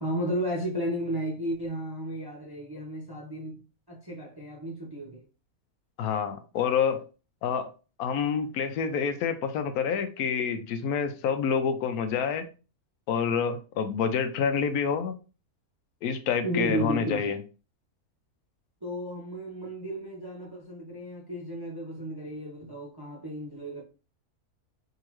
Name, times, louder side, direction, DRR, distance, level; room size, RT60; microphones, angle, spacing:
voice 1, 0.0-3.6 3.9-5.2 16.4-17.3 18.8-23.8, right 1 dB, 25° right, 0.5 m, -33 dB
voice 2, 6.0-7.0 7.4-7.7 8.0-12.5 13.1-15.1 16.0-17.4, left 6 dB, 80° left, 1.0 m, -27 dB
3.6 x 2.8 x 3.0 m
omnidirectional pair, 1.6 m